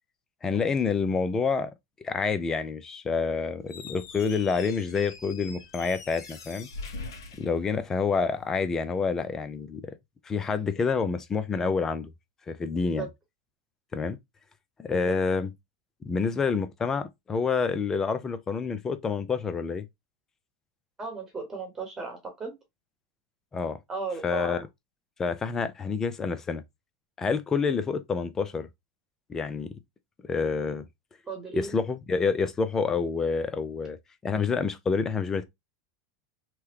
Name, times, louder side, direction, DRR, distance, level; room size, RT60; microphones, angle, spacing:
voice 1, 0.4-1.7 2.0-6.7 7.4-9.9 10.2-12.1 12.5-13.1 13.9-14.2 14.8-15.5 16.1-19.9 23.5-23.8 24.2-24.6 25.2-26.6 27.2-28.7 29.3-29.7 30.3-30.8 31.5-34.0 34.2-35.4, left 5 dB, 25° left, 0.6 m, -28 dB
Squeak, 3.6-8.3, left 4 dB, 85° left, 1.1 m, -43 dB
voice 2, 21.0-22.5 23.9-24.6 31.3-31.8, right 4 dB, 20° right, 1.1 m, -36 dB
3.0 x 2.2 x 3.4 m
hypercardioid pair, 100°, 2 cm